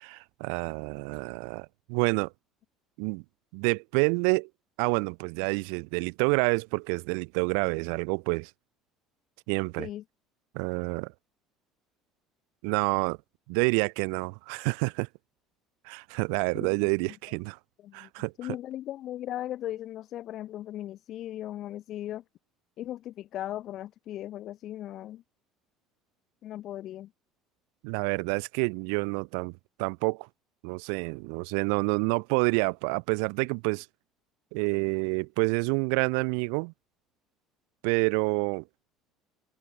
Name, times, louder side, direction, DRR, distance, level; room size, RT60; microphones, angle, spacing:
voice 1, 0.0-2.3 3.0-3.2 3.5-4.5 4.8-8.5 9.5-9.9 10.5-11.1 12.6-13.2 13.5-15.1 15.9-17.6 17.9-18.3 27.8-29.5 29.8-30.3 30.6-33.9 34.5-36.7 37.8-38.6, right 40 dB or more, 85° right, 7.1 m, -28 dB
voice 2, 18.4-22.2 22.8-25.2 26.4-27.1, left 13 dB, 50° left, 6.9 m, -37 dB
cardioid pair, 145°, 0 cm